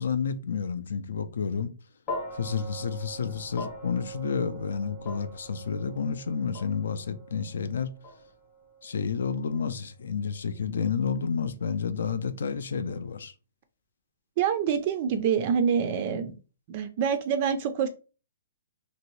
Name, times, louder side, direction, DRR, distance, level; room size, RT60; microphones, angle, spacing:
voice 1, 0.0-1.7 2.3-7.9 8.8-13.3, left 6 dB, 75° left, 0.4 m, -30 dB
sound 1, 2.1-10.4, equal, 15° left, 0.8 m, -42 dB
voice 2, 14.4-16.4 16.7-17.9, right 7 dB, 35° right, 0.3 m, -26 dB
2.9 x 2.6 x 3.0 m
hypercardioid pair, 170°, 0 cm